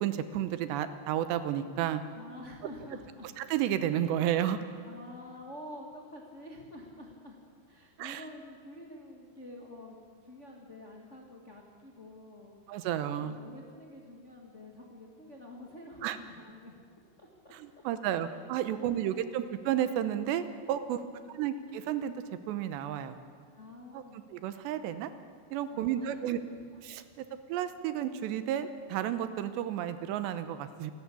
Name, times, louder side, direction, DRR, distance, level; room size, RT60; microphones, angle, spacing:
voice 1, 0.0-2.0 3.4-4.6 8.0-8.2 12.7-13.4 16.0-16.2 17.5-21.0 21.3-22.1 22.5-23.2 23.9-24.0 24.3-25.1 25.5-26.4 26.8-30.9, right 11 dB, 85° right, 11 dB, 3.1 m, -32 dB
voice 2, 2.1-3.3 4.8-7.4 7.7-12.6 13.2-16.8 17.2-18.3 18.7-19.5 20.9-21.7 23.5-24.2 25.7-26.6, left 1 dB, 50° left, 0 dB, 0.8 m, -48 dB
26.5 x 12.0 x 8.5 m, 2.1 s
omnidirectional pair, 5.0 m